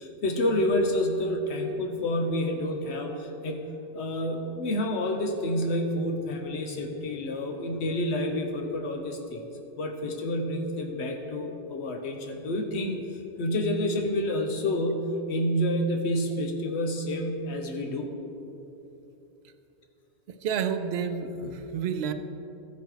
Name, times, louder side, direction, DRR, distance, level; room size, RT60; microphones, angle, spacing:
voice 1, 0.0-3.6 3.9-9.4 9.8-18.1, left 1 dB, 80° left, 3 dB, 1.1 m, -29 dB
voice 2, 20.4-22.1, right 7 dB, 75° right, 8 dB, 0.8 m, -29 dB
14.0 x 5.2 x 4.6 m, 3.0 s
omnidirectional pair, 1.1 m